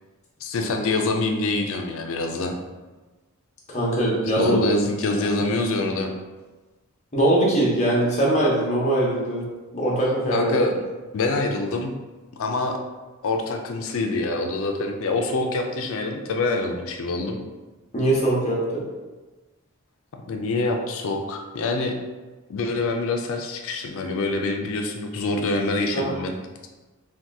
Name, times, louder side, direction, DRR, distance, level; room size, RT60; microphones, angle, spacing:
voice 1, 0.4-2.6 4.4-6.1 10.3-10.8 11.1-11.9 12.3-12.8 13.2-17.4 20.1-22.0 22.5-26.3, left 2 dB, 65° left, 4 dB, 0.4 m, -25 dB
voice 2, 3.7-4.6 5.1-5.2 7.1-9.4 9.7-10.6 17.9-18.8 25.9-26.1, right 1 dB, 35° left, -5 dB, 0.8 m, -21 dB
2.8 x 2.3 x 3.4 m, 1.2 s
head